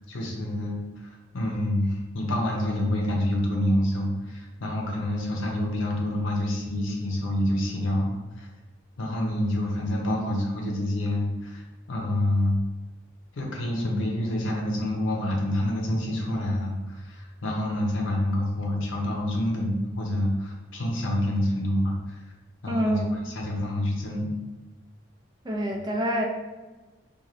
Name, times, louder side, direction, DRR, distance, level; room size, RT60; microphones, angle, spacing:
voice 1, 0.1-8.5 9.0-11.6 11.9-12.6 13.3-22.2 22.6-23.0 23.2-24.3, left 1 dB, 75° left, -1 dB, 0.7 m, -27 dB
voice 2, 22.7-23.1 25.4-26.2, equal, 20° right, 0 dB, 0.3 m, -26 dB
3.0 x 2.4 x 2.5 m, 1.2 s
head